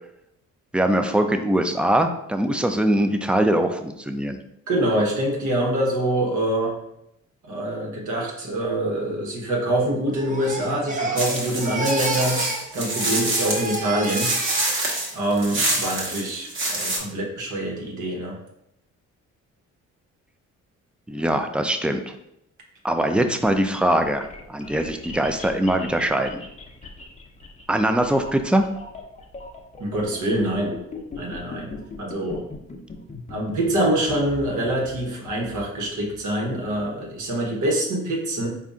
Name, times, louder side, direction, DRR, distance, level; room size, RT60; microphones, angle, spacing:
voice 1, 0.7-4.4 21.1-22.2 22.8-26.4 27.7-28.7, right 1 dB, 5° right, 7 dB, 0.3 m, -22 dB
voice 2, 4.7-6.7 7.4-12.4 12.7-14.3 15.1-18.4 29.8-30.8 31.2-32.4 33.3-38.5, right 1 dB, 75° right, -1 dB, 1.2 m, -25 dB
Crying sobbing, 10.1-12.7 12.9-15.1 15.5-15.9, right 2 dB, 25° right, 0.8 m, -31 dB
sound 1, 11.2-17.0, right 2 dB, 45° right, 1.2 m, -26 dB
sound 2, 23.2-37.3, left 3 dB, 25° left, 0.7 m, -40 dB
4.1 x 2.5 x 3.6 m, 0.80 s
cardioid pair, 90°, 30 cm